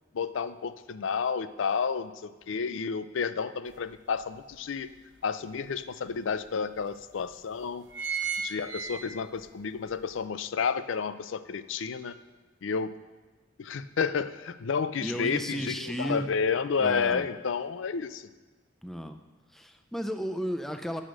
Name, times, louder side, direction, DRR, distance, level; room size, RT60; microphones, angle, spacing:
voice 1, 0.1-2.1 2.5-4.9 5.2-7.9 8.4-12.2 12.6-12.9 13.6-18.3, left 6 dB, 80° left, 13 dB, 0.4 m, -31 dB
sound 1, 3.7-3.8 4.3-5.4 6.1-6.2 6.4-6.5 7.2-7.4 7.7-9.5 9.9-10.0, right 6 dB, 80° right, 0.9 m, -34 dB
voice 2, 15.0-16.3 16.8-17.2 18.8-19.2 19.5-21.0, equal, ahead, 7 dB, 0.4 m, -33 dB
8.5 x 6.3 x 6.2 m, 1.3 s
head